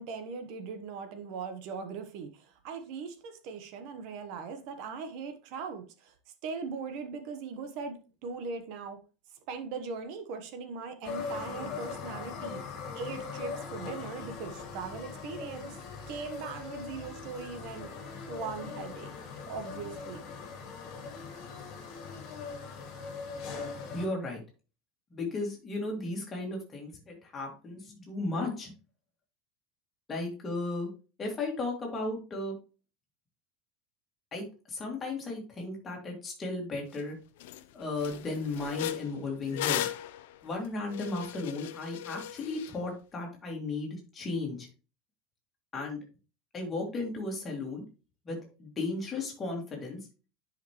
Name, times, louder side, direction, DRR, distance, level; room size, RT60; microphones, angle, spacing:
voice 1, 0.0-6.1 6.4-9.0 9.5-12.6 12.9-15.8 16.1-19.1 19.5-20.2, right 5 dB, 45° right, 8 dB, 1.1 m, -40 dB
sound 1, 11.0-24.1, left 5 dB, 35° left, 2.1 m, -41 dB
voice 2, 23.9-24.4 25.1-28.7 30.1-30.9 31.2-32.6 34.3-37.2 37.7-39.9 40.4-44.7 45.7-46.0 46.5-47.8 48.3-50.0, left 2 dB, 15° left, 0 dB, 2.2 m, -35 dB
sound 2, 36.9-37.0 37.4-37.6 38.0-42.7, left 12 dB, 70° left, 0.6 m, -37 dB
10.0 x 5.2 x 3.1 m, 0.33 s
supercardioid pair, 180°, 0 cm